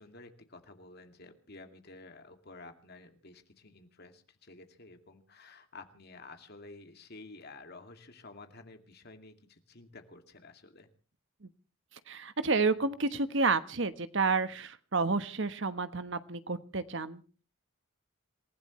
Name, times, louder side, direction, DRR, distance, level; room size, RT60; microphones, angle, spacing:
voice 1, 0.0-10.9 12.8-13.1, left 3 dB, 50° left, 7 dB, 2.4 m, -52 dB
voice 2, 12.1-17.2, right 4 dB, 65° right, 12 dB, 1.2 m, -30 dB
27.5 x 15.5 x 3.2 m, 0.36 s
head